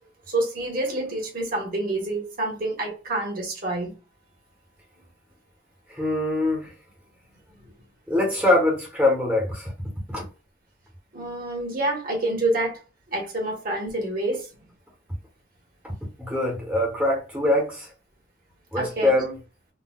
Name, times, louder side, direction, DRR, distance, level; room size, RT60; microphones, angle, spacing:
voice 1, 0.3-3.9 11.1-12.7 13.1-14.5 18.7-19.1, right 2 dB, 50° right, 1.4 m, -27 dB
voice 2, 5.9-6.7 8.1-9.7 10.1-10.2 15.8-15.9 16.2-17.9 18.7-19.4, left 1 dB, 5° right, 0.9 m, -23 dB
3.8 x 2.3 x 2.2 m
head